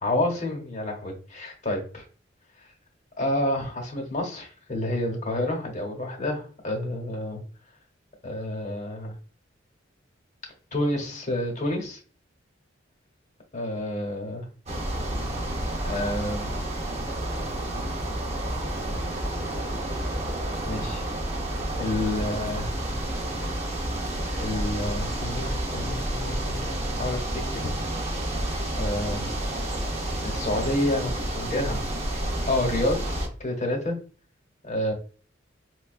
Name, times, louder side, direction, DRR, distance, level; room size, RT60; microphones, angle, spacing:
voice 1, 0.0-2.0 3.2-7.4 8.2-9.1 10.7-12.0 13.5-14.5 15.8-16.5 20.7-21.0 21.8-22.7 24.4-27.3 27.5-27.7 28.7-29.3 30.2-31.8 32.5-34.0 34.6-34.9, left 1 dB, 40° left, 1 dB, 0.9 m, -29 dB
sound 1, 14.7-33.3, right 1 dB, 35° right, 0.7 m, -30 dB
4.4 x 2.2 x 2.4 m, 0.41 s
head